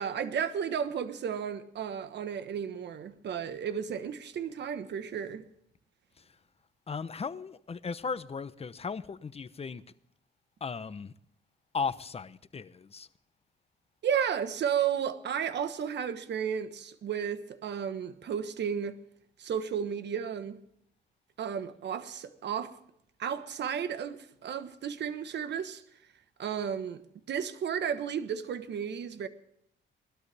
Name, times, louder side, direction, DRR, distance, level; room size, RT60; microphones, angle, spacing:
voice 1, 0.0-5.5 14.0-19.0 19.4-20.6 21.4-22.8 23.2-25.8 26.4-27.0 27.3-29.3, right 8 dB, 60° right, 1.3 m, -33 dB
voice 2, 6.9-9.8 10.6-11.1 11.7-13.1, left 5 dB, 30° left, 0.8 m, -36 dB
19.5 x 12.5 x 3.5 m
cardioid pair, 90°, 20 cm